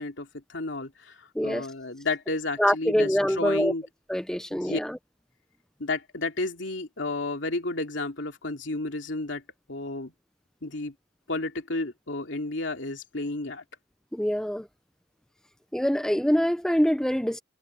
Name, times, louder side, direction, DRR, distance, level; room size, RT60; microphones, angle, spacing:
voice 1, 0.0-3.8 4.5-4.8 5.8-9.4 9.7-10.1 10.6-10.9 11.3-13.6, left 2 dB, 70° left, 2.9 m, -32 dB
voice 2, 1.4-1.7 2.6-3.7 4.1-5.0 14.1-14.7 15.7-17.4, equal, 5° left, 0.5 m, -24 dB
head